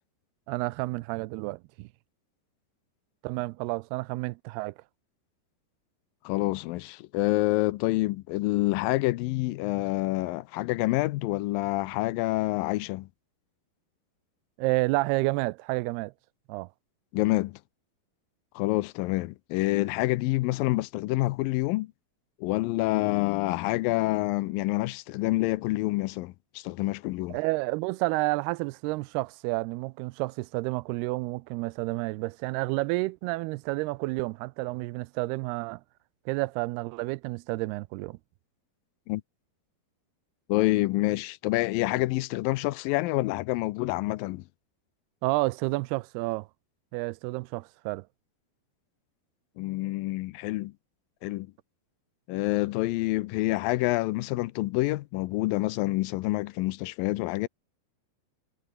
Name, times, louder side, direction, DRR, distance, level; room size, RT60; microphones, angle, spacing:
voice 1, 0.5-1.9 3.2-4.7 14.6-16.1 16.5-16.7 27.3-35.8 36.3-38.2 45.2-46.5 46.9-48.0, right 23 dB, 90° right, 2.6 m, -30 dB
voice 2, 6.3-13.1 17.1-17.6 18.6-21.9 22.4-27.4 39.1-39.2 40.5-44.4 49.6-50.7 51.2-51.5 52.3-57.5, left 19 dB, 80° left, 2.1 m, -27 dB
omnidirectional pair, 4.5 m